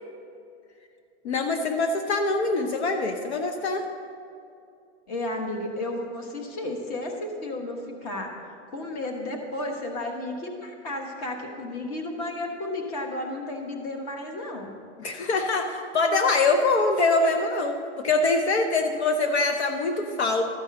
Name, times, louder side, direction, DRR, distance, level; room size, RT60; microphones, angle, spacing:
voice 1, 1.2-3.8 15.0-20.4, left 3 dB, 65° left, 5 dB, 0.9 m, -24 dB
voice 2, 5.1-8.4 8.7-14.7, left 1 dB, 30° left, 3 dB, 1.2 m, -33 dB
13.0 x 5.4 x 7.5 m, 2.5 s
supercardioid pair, 175°, 36 cm